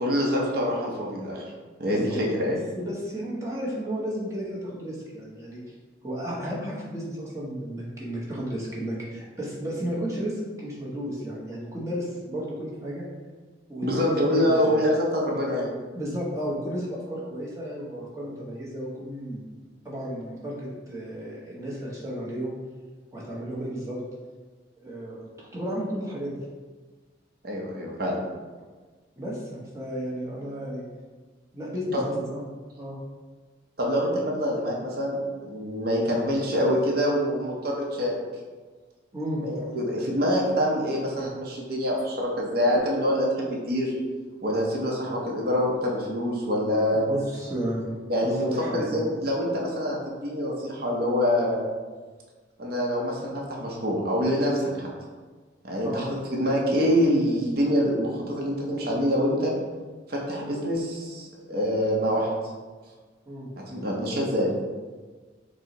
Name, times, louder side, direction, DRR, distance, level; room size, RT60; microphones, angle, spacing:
voice 1, 0.0-1.4 1.8-2.6 13.8-15.7 27.4-28.2 31.9-32.0 33.8-38.2 39.4-43.9 44.4-47.0 48.1-48.4 48.7-51.6 52.6-54.9 55.6-59.5 60.1-62.3 63.6-64.5, equal, 55° right, -2 dB, 0.7 m, -25 dB
voice 2, 1.8-5.7 6.0-13.0 13.7-14.8 15.9-19.5 19.8-22.6 23.1-24.0 24.8-25.2 25.5-26.4 29.2-30.8 31.5-32.4 32.8-33.0 39.1-39.4 47.1-47.9 48.2-49.1 55.8-56.0 63.3-63.5, equal, 15° right, -6 dB, 0.8 m, -33 dB
4.4 x 2.1 x 3.8 m, 1.4 s
head